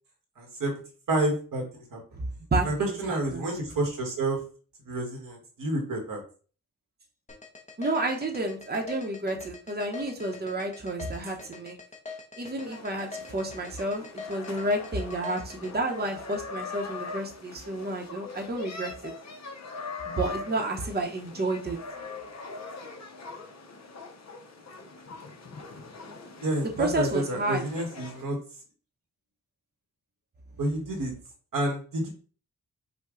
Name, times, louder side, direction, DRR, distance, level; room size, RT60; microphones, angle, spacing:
voice 1, 0.4-0.8 1.1-2.0 2.6-4.4 4.8-6.2 26.4-28.4 30.6-31.1 31.5-32.1, right 2 dB, 90° right, 1 dB, 1.5 m, -29 dB
voice 2, 2.5-3.5 7.8-11.8 12.4-19.1 20.1-21.8 26.8-27.6, right 2 dB, 30° right, 2 dB, 0.8 m, -30 dB
sound 1, 7.3-15.7, left 4 dB, 20° left, 0.8 m, -43 dB
sound 2, 12.6-28.2, left 4 dB, 55° left, 0.8 m, -42 dB
5.4 x 2.2 x 3.8 m, 0.40 s
wide cardioid pair, 120°, 32 cm